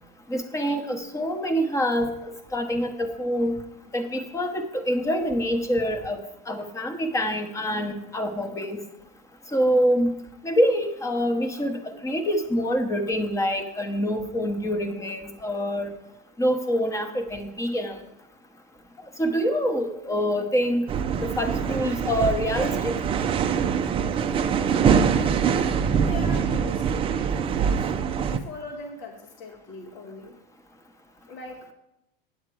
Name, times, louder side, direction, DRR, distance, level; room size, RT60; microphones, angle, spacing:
voice 1, 0.3-3.6 3.9-6.2 6.5-8.8 9.5-10.1 10.4-15.9 16.4-18.0 19.2-20.8 21.2-22.9, equal, 10° left, 8 dB, 0.9 m, -25 dB
sound 1, 20.9-28.4, right 7 dB, 20° right, 0.4 m, -24 dB
voice 2, 24.4-27.1 27.6-30.4 31.3-31.7, left 3 dB, 80° left, 1 dB, 1.6 m, -41 dB
9.6 x 7.2 x 4.7 m, 0.85 s
supercardioid pair, 130°, 29 cm